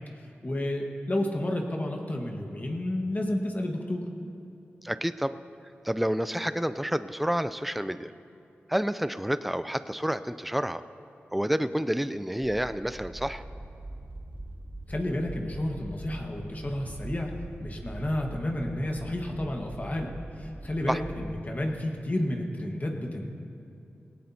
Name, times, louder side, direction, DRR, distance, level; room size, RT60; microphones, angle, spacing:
voice 1, 0.1-4.1 14.9-17.3 17.6-23.3, left 1 dB, 35° left, 1 dB, 1.5 m, -31 dB
voice 2, 4.8-5.4 5.8-8.1 8.7-10.8 11.3-13.4 20.9-21.0, equal, ahead, 13 dB, 0.4 m, -29 dB
sound 1, 12.4-21.4, right 1 dB, 25° right, 1.0 m, -42 dB
18.0 x 16.5 x 2.8 m, 2.7 s
cardioid pair, 50°, 4 cm